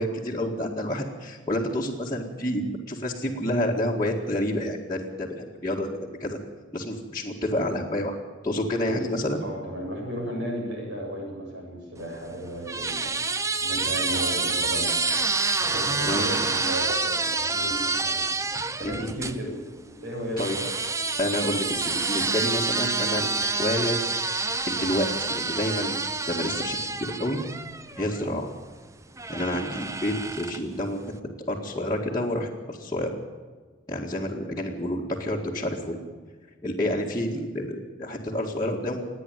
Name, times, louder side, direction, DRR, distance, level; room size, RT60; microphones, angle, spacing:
voice 1, 0.0-5.9 6.2-6.4 6.7-8.2 8.4-9.4 16.0-16.3 18.8-19.1 20.4-20.6 21.2-24.0 24.7-26.0 26.3-27.4 28.0-28.5 29.3-31.0 31.5-33.1 33.9-36.0 36.6-39.0, left 1 dB, 20° left, -5 dB, 2.0 m, -29 dB
voice 2, 9.4-13.2 13.6-14.9 15.6-18.2 18.8-19.5 19.9-20.7, equal, 60° right, -1 dB, 7.8 m, -34 dB
sound 1, 12.0-19.4 20.4-28.3 29.2-30.8, right 3 dB, 15° right, 0.7 m, -28 dB
28.0 x 10.0 x 9.2 m, 1.5 s
head